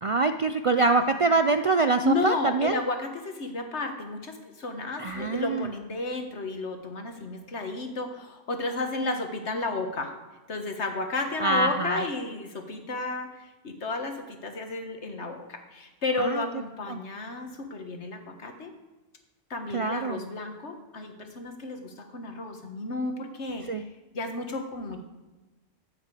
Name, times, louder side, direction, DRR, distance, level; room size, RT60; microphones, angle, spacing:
voice 1, 0.0-2.8 5.0-5.7 11.4-12.0 16.2-16.4 16.9-17.0 19.7-20.2 23.7-23.8, right 3 dB, 60° right, 9 dB, 0.3 m, -25 dB
voice 2, 2.0-10.1 10.5-18.7 19.5-23.7 24.1-25.0, left 2 dB, 90° left, 5 dB, 1.8 m, -32 dB
13.0 x 5.9 x 8.4 m, 1.1 s
omnidirectional pair, 1.1 m